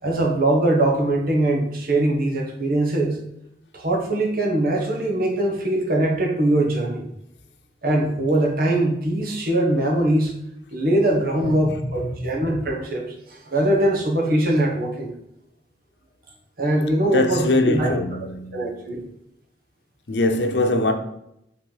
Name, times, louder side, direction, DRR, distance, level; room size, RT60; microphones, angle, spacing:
voice 1, 0.0-3.2 3.7-7.1 7.8-10.4 10.7-15.1 16.6-17.9 18.5-19.0, right 1 dB, 55° right, 1.4 m, -22 dB
voice 2, 11.6-12.3 17.1-18.7 20.1-20.9, left 2 dB, 75° left, 0.8 m, -22 dB
5.8 x 3.7 x 5.1 m
head